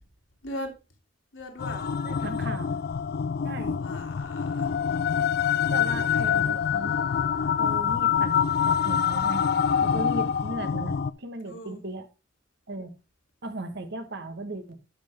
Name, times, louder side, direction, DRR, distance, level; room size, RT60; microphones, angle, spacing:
voice 1, 1.3-2.0 3.7-4.8 5.6-6.4 9.9-10.3 11.4-11.8, left 1 dB, 75° left, 2.5 m, -40 dB
sound 1, 1.6-11.1, left 7 dB, 55° left, 0.4 m, -26 dB
voice 2, 2.0-2.8 3.4-3.8 5.7-7.0 7.6-8.3 8.8-9.4 9.8-12.1 12.7-12.9 13.4-14.8, right 2 dB, 60° right, 1.3 m, -36 dB
11.0 x 5.8 x 3.4 m
head